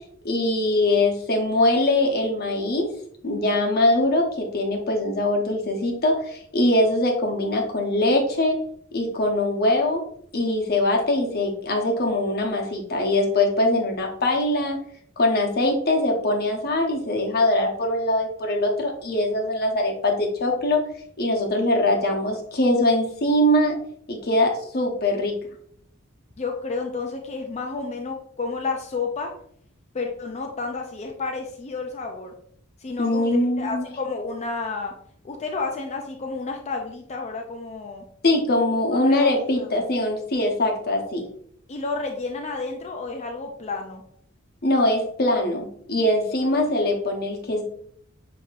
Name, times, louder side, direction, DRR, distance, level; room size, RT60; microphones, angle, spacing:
voice 1, 0.2-2.9 3.2-8.6 8.9-10.0 10.3-14.8 15.2-20.8 21.2-23.8 24.1-25.3 33.0-33.9 38.2-41.2 44.6-47.6, left 1 dB, 50° left, 1 dB, 0.9 m, -22 dB
voice 2, 26.4-29.3 29.9-32.3 32.8-33.3 33.6-34.9 35.2-38.0 38.9-39.7 41.7-44.0 46.4-46.5, left 4 dB, 35° left, 2 dB, 0.4 m, -31 dB
6.3 x 2.9 x 2.4 m, 0.64 s
head